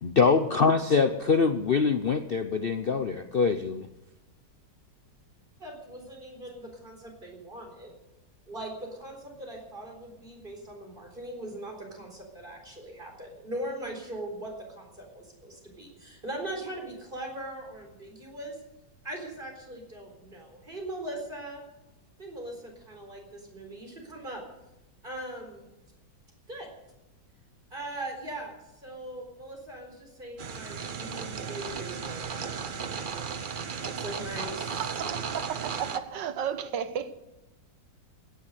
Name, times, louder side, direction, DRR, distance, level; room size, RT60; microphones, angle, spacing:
voice 1, 0.0-3.9, left 5 dB, 75° left, 9 dB, 0.5 m, -24 dB
voice 2, 5.6-7.9 8.5-18.6 19.0-21.6 22.2-24.4 25.0-25.7 26.5-26.7 27.7-33.2 33.9-34.9, right 1 dB, 25° right, 2 dB, 4.2 m, -40 dB
sound 1, 30.4-36.0, right 6 dB, 50° right, 0.6 m, -35 dB
voice 3, 34.8-35.2 35.4-37.3, right 8 dB, 75° right, 12 dB, 1.6 m, -33 dB
16.5 x 10.5 x 8.0 m, 0.95 s
omnidirectional pair, 2.0 m